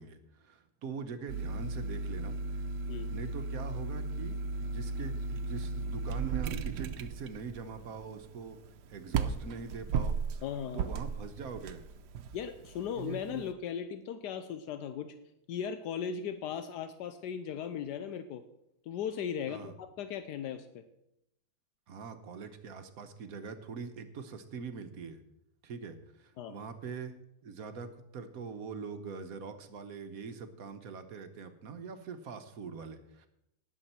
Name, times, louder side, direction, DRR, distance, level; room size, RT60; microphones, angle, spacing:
voice 1, 0.0-2.6 3.1-10.4 10.7-11.9 19.5-19.7 21.9-25.2 25.6-27.1 27.4-33.3, right 5 dB, 65° right, 9 dB, 1.3 m, -43 dB
sound 1, 1.3-13.5, right 4 dB, 85° right, 1.3 m, -36 dB
voice 2, 10.4-11.0 12.3-15.1 15.5-18.4 18.9-20.8 26.4-26.5, left 8 dB, 85° left, 10 dB, 1.3 m, -37 dB
18.5 x 7.1 x 4.3 m, 0.81 s
omnidirectional pair, 1.7 m